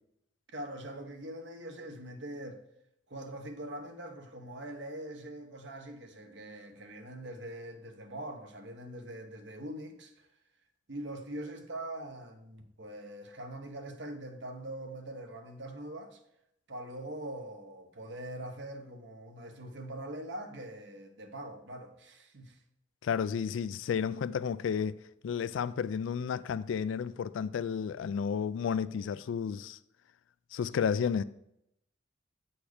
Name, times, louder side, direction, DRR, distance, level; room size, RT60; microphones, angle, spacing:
voice 1, 0.5-2.6 3.1-10.3 10.9-16.2 16.7-22.6, right 1 dB, 65° right, 1.0 m, -43 dB
voice 2, 23.0-25.0 25.2-29.8 30.5-31.2, left 7 dB, 75° left, 0.3 m, -32 dB
8.5 x 4.3 x 4.9 m
head